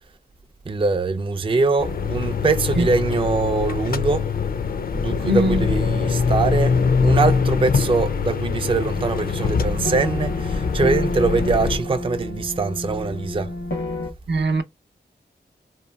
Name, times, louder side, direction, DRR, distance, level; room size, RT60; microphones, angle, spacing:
voice 1, 0.7-4.3 4.9-13.6, right 4 dB, 30° right, 0.4 m, -23 dB
sound 1, 1.8-11.8, left 5 dB, 55° left, 0.4 m, -23 dB
voice 2, 5.3-5.6 14.3-14.6, equal, 75° right, 0.6 m, -20 dB
sound 2, 8.9-14.1, left 1 dB, 85° left, 0.9 m, -30 dB
2.9 x 2.2 x 2.2 m
cardioid pair, 45°, 18 cm